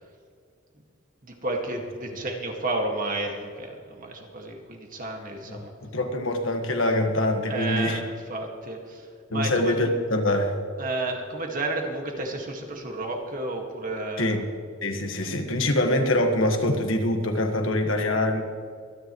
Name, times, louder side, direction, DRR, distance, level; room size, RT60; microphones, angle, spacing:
voice 1, 1.2-5.7 7.5-9.8 10.8-14.4, right 2 dB, 40° right, 1 dB, 1.9 m, -31 dB
voice 2, 5.5-8.0 9.3-10.6 14.2-14.4 14.8-18.4, left 1 dB, 70° left, 4 dB, 1.5 m, -24 dB
25.0 x 10.5 x 3.1 m, 2.2 s
head